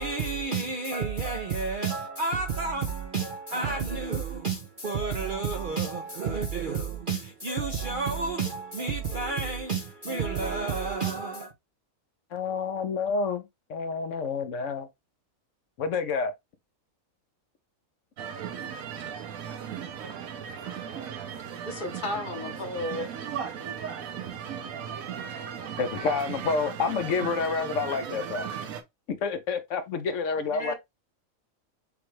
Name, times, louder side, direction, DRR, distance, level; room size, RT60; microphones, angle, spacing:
voice 1, 0.0-11.5, right 4 dB, 55° right, 0.6 m, -30 dB
voice 2, 12.3-13.4 13.7-14.9 15.8-16.3 25.8-28.5 29.2-30.7, left 5 dB, 65° left, 1.0 m, -28 dB
sound 1, 18.2-28.8, right 8 dB, 85° right, 1.2 m, -37 dB
voice 3, 21.7-23.1 30.4-30.7, left 2 dB, 40° left, 1.0 m, -34 dB
6.9 x 2.3 x 3.1 m
omnidirectional pair, 1.4 m